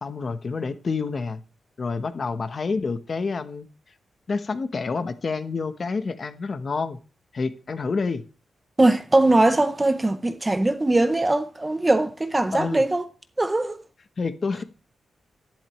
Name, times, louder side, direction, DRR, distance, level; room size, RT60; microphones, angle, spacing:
voice 1, 0.0-1.4 1.8-3.7 4.3-7.0 7.3-8.2 12.5-12.8 14.2-14.6, left 4 dB, 35° left, 0.9 m, -28 dB
voice 2, 8.8-13.0 13.4-13.8, right 2 dB, 15° right, 0.6 m, -21 dB
12.0 x 10.5 x 3.1 m
wide cardioid pair, 170°, 0 cm